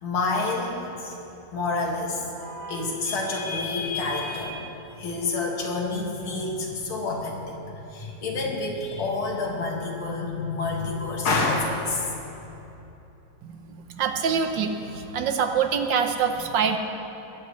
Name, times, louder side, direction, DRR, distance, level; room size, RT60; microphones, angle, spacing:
voice 1, 0.0-1.2 1.5-4.6 5.0-12.1 12.5-12.7, left 3 dB, 90° left, -1 dB, 2.8 m, -28 dB
voice 2, 13.9-16.8, right 6 dB, 65° right, 6 dB, 1.5 m, -25 dB
22.0 x 15.5 x 3.2 m, 2.9 s
omnidirectional pair, 2.2 m